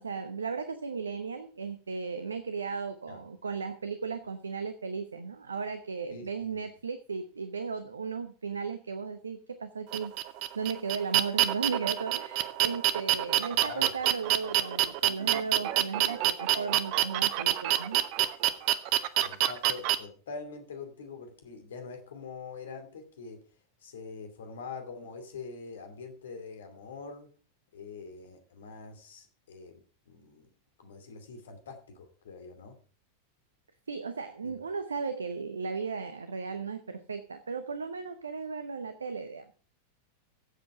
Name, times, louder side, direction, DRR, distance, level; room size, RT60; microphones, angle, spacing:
voice 1, 0.0-10.1 10.5-18.1 33.9-39.5, right 5 dB, 75° right, 11 dB, 0.9 m, -36 dB
voice 2, 6.1-6.6 13.5-14.0 19.2-23.4 23.8-27.3 27.7-29.8 30.1-30.5 30.8-32.7 34.4-34.5, left 4 dB, 65° left, 7 dB, 2.7 m, -44 dB
sound 1, 9.9-20.0, right 13 dB, 45° right, 0.9 m, -26 dB
14.5 x 7.9 x 4.8 m, 0.40 s
figure-of-eight pair, 90°, 0 cm